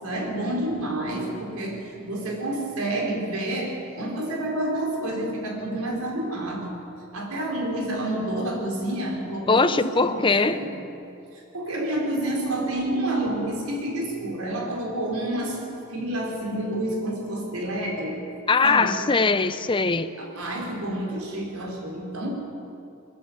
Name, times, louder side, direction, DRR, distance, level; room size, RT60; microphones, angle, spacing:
voice 1, 0.0-6.8 7.1-10.8 11.3-15.6 15.9-18.2 18.6-19.0 20.2-22.3, right 1 dB, 90° right, 0 dB, 4.5 m, -29 dB
voice 2, 9.5-10.6 18.5-20.1, left 4 dB, 25° left, 11 dB, 0.7 m, -21 dB
22.0 x 14.0 x 8.6 m, 2.8 s
head